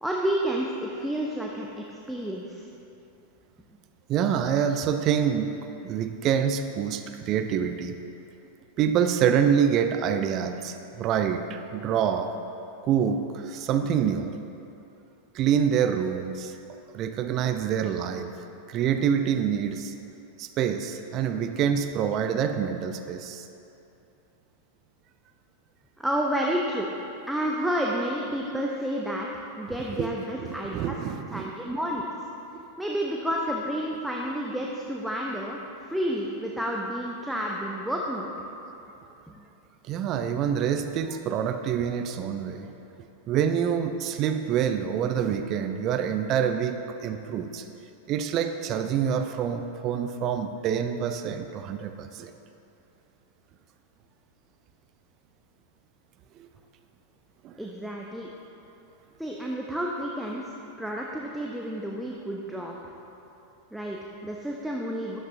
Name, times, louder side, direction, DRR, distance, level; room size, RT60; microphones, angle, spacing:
voice 1, 0.0-2.6 26.0-26.9 27.3-29.3 29.6-30.9 31.3-32.1 32.8-35.6 35.9-38.3 39.3-39.4 57.6-58.3 59.2-60.4 60.8-62.7 63.7-65.2, equal, 5° right, -2 dB, 0.8 m, -30 dB
voice 2, 4.1-5.6 5.8-8.0 8.8-12.3 12.8-14.3 15.3-16.5 16.9-19.9 20.4-23.5 30.0-30.1 30.4-31.5 32.5-32.6 39.9-42.7 43.3-47.7 48.1-52.3 56.4-56.5 57.4-57.5, right 8 dB, 35° right, 8 dB, 0.6 m, -26 dB
13.0 x 11.5 x 2.6 m, 2.9 s
figure-of-eight pair, 90°, 0 cm